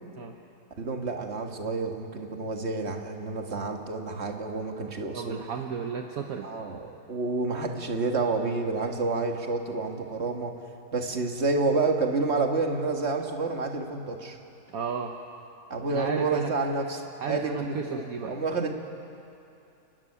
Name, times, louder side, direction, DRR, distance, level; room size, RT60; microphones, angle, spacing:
voice 1, 0.8-5.4 6.4-10.6 10.9-14.4 15.7-18.7, right 3 dB, 40° right, 3 dB, 1.9 m, -29 dB
voice 2, 5.1-6.5 14.7-15.1 15.9-16.5 17.2-18.4, right 6 dB, 60° right, 3 dB, 1.4 m, -33 dB
30.0 x 12.5 x 9.8 m, 2.7 s
omnidirectional pair, 1.7 m